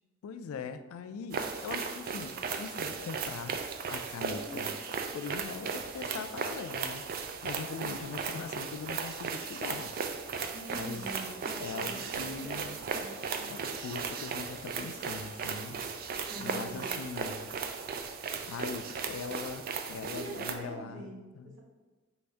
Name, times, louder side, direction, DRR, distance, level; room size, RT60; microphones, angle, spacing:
voice 1, 0.2-3.6 3.9-4.8 5.1-7.0 7.4-9.9 10.7-11.1 11.6-12.8 13.5-15.8 16.4-17.5 18.5-21.6, left 5 dB, 80° left, 10 dB, 0.3 m, -41 dB
sound 1, 1.3-20.5, right 5 dB, 45° right, 0.3 m, -36 dB
voice 2, 4.3-5.0 7.7-8.0 10.5-13.5 16.3-17.0 20.1-21.3, right 1 dB, 60° right, -1 dB, 0.8 m, -44 dB
4.7 x 2.6 x 3.3 m, 1.3 s
head